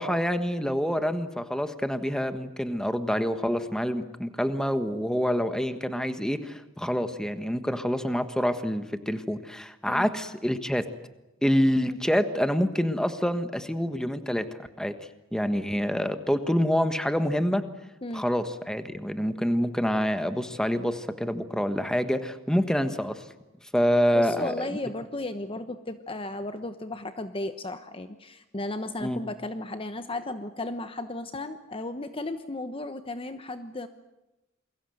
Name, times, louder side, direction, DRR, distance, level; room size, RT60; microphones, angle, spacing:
voice 1, 0.0-10.9 11.4-14.5 14.8-14.9 15.3-17.6 18.1-23.2 23.7-24.7 29.0-29.2, equal, 5° left, 9 dB, 1.5 m, -27 dB
voice 2, 24.1-33.9, left 2 dB, 30° left, 9 dB, 1.0 m, -35 dB
28.5 x 22.5 x 7.9 m, 0.99 s
head